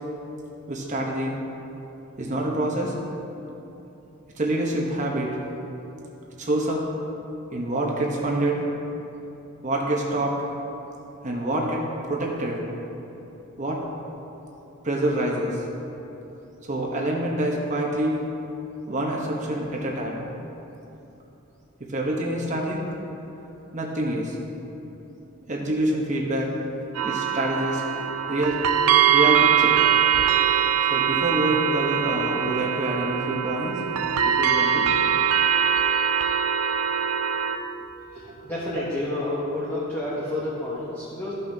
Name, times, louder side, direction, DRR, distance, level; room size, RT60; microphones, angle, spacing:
voice 1, 0.7-1.4 2.2-2.9 4.4-5.3 6.4-6.8 7.5-8.6 9.6-10.4 11.2-11.8 12.1-12.6 13.6-13.8 14.8-15.6 16.6-18.2 18.9-20.2 21.9-22.8 23.7-24.4 25.5-26.5 27.0-27.8 28.3-28.6 29.1-29.7 30.9-33.8 34.2-34.9 38.2-38.4 38.7-38.8, right 1 dB, 35° right, -2 dB, 0.9 m, -26 dB
sound 1, 26.9-37.6, right 9 dB, 90° right, 0.4 m, -22 dB
voice 2, 38.1-41.3, left 1 dB, 10° left, -8 dB, 0.9 m, -30 dB
13.0 x 5.5 x 2.7 m, 3.0 s
head